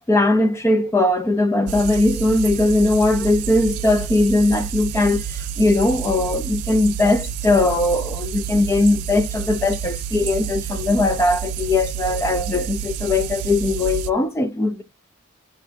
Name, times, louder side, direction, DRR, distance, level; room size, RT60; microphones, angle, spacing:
voice 1, 0.1-14.8, left 2 dB, 15° left, 0.3 m, -19 dB
sound 1, 1.7-14.1, right 8 dB, 80° right, 0.3 m, -29 dB
4.5 x 2.2 x 4.0 m
head